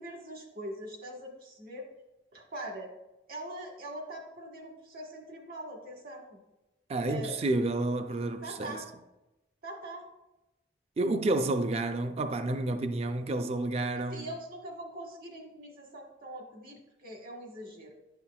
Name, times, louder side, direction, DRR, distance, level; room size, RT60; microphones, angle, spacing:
voice 1, 0.0-1.9 2.3-2.9 3.3-6.4 7.1-7.4 8.4-8.9 9.6-10.1 14.1-17.9, right 1 dB, 50° right, 1.3 m, -42 dB
voice 2, 6.9-8.8 11.0-14.3, right 2 dB, 35° right, 0.4 m, -30 dB
10.0 x 5.6 x 2.3 m
head